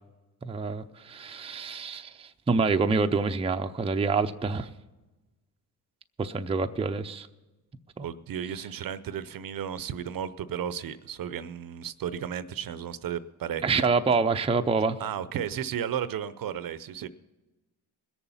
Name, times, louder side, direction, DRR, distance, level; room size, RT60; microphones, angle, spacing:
voice 1, 0.4-4.7 6.2-7.3 8.0-8.1 13.6-15.0, right 4 dB, 15° right, 6 dB, 0.6 m, -27 dB
voice 2, 8.0-13.9 15.0-17.1, right 9 dB, 55° right, 15 dB, 0.7 m, -34 dB
21.0 x 7.1 x 5.6 m, 1.1 s
cardioid pair, 80°, 42 cm